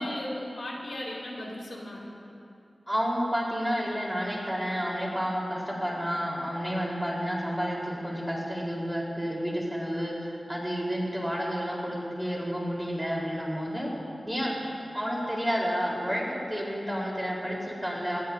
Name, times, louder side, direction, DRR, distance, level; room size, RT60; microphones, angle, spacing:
voice 1, 0.0-2.1, left 1 dB, 80° left, -3 dB, 4.2 m, -37 dB
voice 2, 2.9-13.9 14.3-14.5 14.9-18.2, equal, 5° right, -4 dB, 3.9 m, -30 dB
25.5 x 19.0 x 2.7 m, 2.7 s
wide cardioid pair, 90°, 0 cm